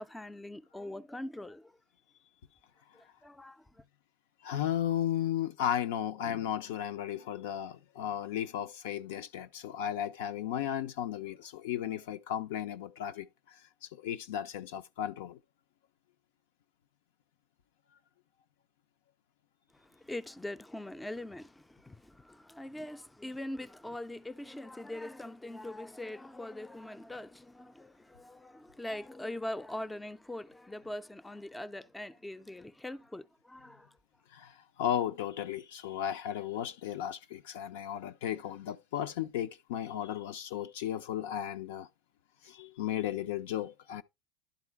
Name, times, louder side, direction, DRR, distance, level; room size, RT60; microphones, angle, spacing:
voice 1, 0.0-1.7 2.9-3.8 19.7-33.9, left 1 dB, 5° left, 0.4 m, -42 dB
voice 2, 4.4-15.4 34.3-41.9 42.4-44.0, left 10 dB, 80° left, 0.6 m, -35 dB
11.5 x 3.9 x 3.4 m
supercardioid pair, 110°, 0 cm